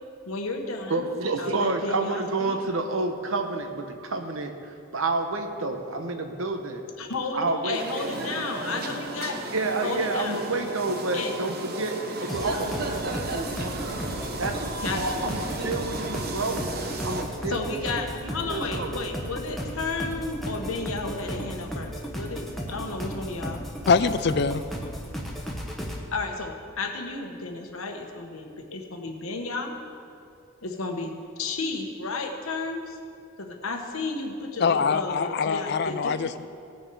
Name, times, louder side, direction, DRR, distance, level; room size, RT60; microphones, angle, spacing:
voice 1, 0.3-1.0 1.4-2.6 7.0-9.4 9.8-10.4 11.1-11.4 14.8-15.0 17.5-23.6 26.1-29.8 30.6-33.0 33.4-36.4, left 3 dB, 85° left, 3 dB, 1.2 m, -33 dB
voice 2, 0.9-6.8 7.3-7.8 8.4-8.5 8.9-9.0 9.3-13.9 14.4-14.6 14.9-16.6 17.0-17.7 18.4-18.9, right 3 dB, 75° right, 6 dB, 1.0 m, -29 dB
sound 1, 7.7-17.2, right 2 dB, 45° right, 0.9 m, -34 dB
sound 2, 12.3-26.0, equal, ahead, 1.0 m, -35 dB
voice 3, 23.9-24.6 34.6-36.4, left 5 dB, 50° left, 13 dB, 0.4 m, -23 dB
17.5 x 6.3 x 4.8 m, 2.5 s
head